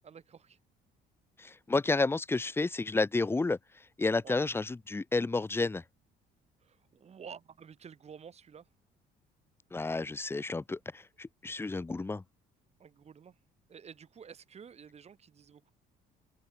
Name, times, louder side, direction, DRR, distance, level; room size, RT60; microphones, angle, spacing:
voice 1, 0.0-0.6 4.2-4.4 6.6-8.7 12.8-13.3 13.7-15.7, right 7 dB, 40° right, 4.1 m, -50 dB
voice 2, 1.4-3.6 4.0-5.8 9.7-12.2, left 3 dB, 15° left, 0.8 m, -31 dB
open air
cardioid pair, 110°, 17 cm